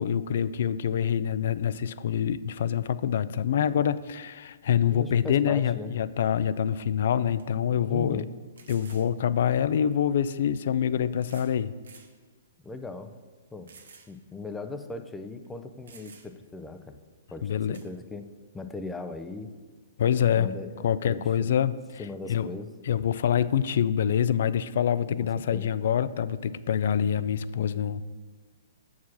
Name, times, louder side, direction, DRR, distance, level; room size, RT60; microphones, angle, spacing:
voice 1, 0.0-8.2 8.7-11.8 17.4-17.8 20.0-20.5 20.8-21.8 22.3-22.5 22.9-28.1, left 9 dB, 65° left, 15 dB, 0.4 m, -26 dB
voice 2, 4.9-6.0 7.8-8.3 12.6-13.1 13.5-13.7 14.1-17.0 17.3-18.2 18.5-19.5 20.4-21.2 22.0-22.7 25.2-25.7, left 3 dB, 10° left, 7 dB, 0.5 m, -38 dB
sound 1, 6.8-6.9 7.4-7.5 8.6-9.1 10.2-10.3 11.2-11.6 11.8-12.1 12.6-12.7 13.7-14.1 14.5-14.6 15.4-15.5 15.9-16.5 17.7-17.9, right 5 dB, 85° right, 1.0 m, -52 dB
7.1 x 4.8 x 6.1 m, 1.4 s
hypercardioid pair, 155°, 0 cm